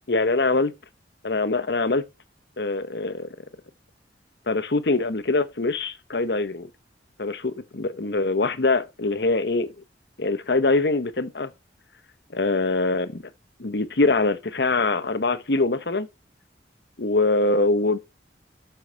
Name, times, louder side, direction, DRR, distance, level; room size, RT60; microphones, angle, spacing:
voice 1, 0.1-0.7 1.2-2.0 2.6-3.4 4.5-6.7 7.2-9.7 10.2-11.5 12.3-13.2 13.6-16.1 17.0-18.0, left 3 dB, 65° left, 1.0 m, -23 dB
12.5 x 5.6 x 4.6 m
head